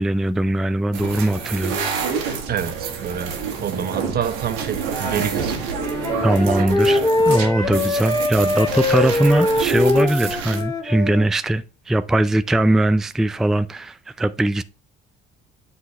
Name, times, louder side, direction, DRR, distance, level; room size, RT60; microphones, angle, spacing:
voice 1, 0.0-1.8 6.2-7.0 7.3-14.6, right 1 dB, ahead, 0.4 m, -20 dB
sound 1, 0.9-10.6, right 6 dB, 90° right, 1.7 m, -28 dB
voice 2, 2.5-5.7 6.5-6.7, right 9 dB, 45° right, 0.9 m, -28 dB
Wind instrument woodwind instrument, 5.7-11.3, left 2 dB, 15° left, 2.1 m, -22 dB
8.2 x 3.9 x 4.8 m
supercardioid pair, 70°, 21 cm